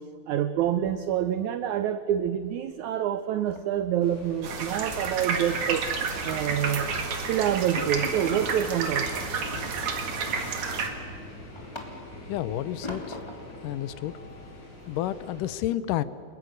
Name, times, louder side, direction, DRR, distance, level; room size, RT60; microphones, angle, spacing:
voice 1, 0.3-5.8 6.2-9.2, right 10 dB, 80° right, 11 dB, 1.7 m, -27 dB
sound 1, 0.6-1.4 1.7-1.9 2.2-2.5 2.7-2.8 3.2-4.8 5.3-5.6 6.1-7.0 7.3-7.4 7.8-8.5 9.5-10.2 10.7-12.3 12.8-13.6, left 1 dB, 10° left, 2.4 m, -42 dB
sound 2, 4.0-15.5, left 1 dB, 50° left, 6.4 m, -43 dB
sound 3, 4.4-10.9, right 5 dB, 55° right, 3.0 m, -30 dB
voice 2, 12.3-13.2 13.6-14.2 14.9-16.0, left 13 dB, 75° left, 15 dB, 2.1 m, -30 dB
29.5 x 22.0 x 6.5 m, 2.5 s
omnidirectional pair, 4.2 m